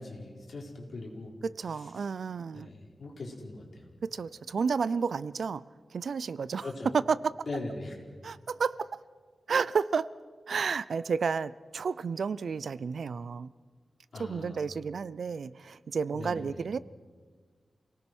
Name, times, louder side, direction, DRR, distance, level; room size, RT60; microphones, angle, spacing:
voice 1, 0.0-1.3 1.7-2.1 2.5-3.9 6.6-6.9 7.5-8.0 14.1-14.7 16.1-16.6, left 2 dB, 65° left, 0 dB, 4.6 m, -40 dB
voice 2, 1.4-2.7 4.0-5.6 5.9-6.6 7.1-7.2 8.2-9.0 9.5-10.1 10.5-13.5 14.2-16.8, right 5 dB, 80° right, 18 dB, 0.5 m, -31 dB
28.0 x 18.5 x 6.2 m, 1.5 s
wide cardioid pair, 120°, 0 cm